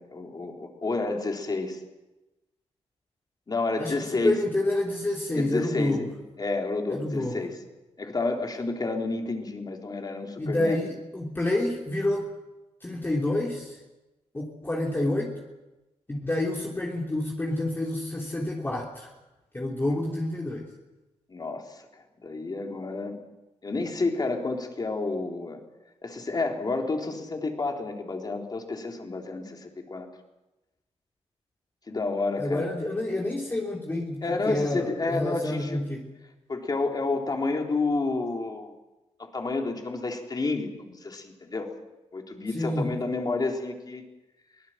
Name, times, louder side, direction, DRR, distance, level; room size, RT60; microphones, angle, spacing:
voice 1, 0.0-1.8 3.5-4.3 5.3-6.0 6.4-7.5 8.0-10.8 21.3-21.8 22.2-23.2 23.6-25.6 26.0-30.1 31.9-32.7 34.2-35.8 36.5-38.7 39.3-41.7 42.1-44.0, left 3 dB, 35° left, 2 dB, 3.8 m, -30 dB
voice 2, 3.8-6.0 6.9-7.4 10.4-12.3 12.8-13.8 14.3-15.4 16.1-19.1 19.5-20.6 32.4-36.1 42.5-43.0, left 1 dB, 20° left, -2 dB, 3.3 m, -28 dB
23.5 x 18.0 x 7.6 m, 1.0 s
cardioid pair, 85°, 11 cm